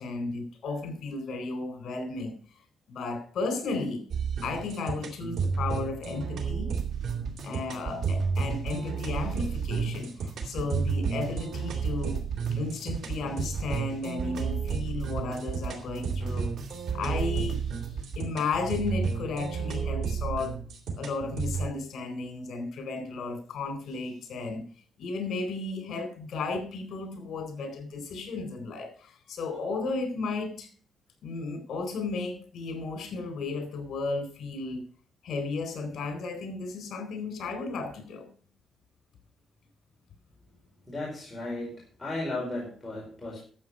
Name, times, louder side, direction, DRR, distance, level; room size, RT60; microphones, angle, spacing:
voice 1, 0.0-2.3 2.9-4.0 4.4-6.7 7.4-12.2 12.5-16.5 16.9-17.6 18.2-20.6 21.0-24.6 25.0-30.7 31.2-34.8 35.2-38.3, left 3 dB, 65° left, 8 dB, 4.1 m, -34 dB
sound 1, 4.1-21.7, right 5 dB, 85° right, 3.3 m, -32 dB
sound 2, 6.8-18.2, right 6 dB, 70° right, 2.1 m, -38 dB
voice 2, 40.9-43.4, left 2 dB, 10° left, -5 dB, 4.5 m, -35 dB
12.5 x 8.1 x 5.6 m, 0.43 s
wide cardioid pair, 160°, 0 cm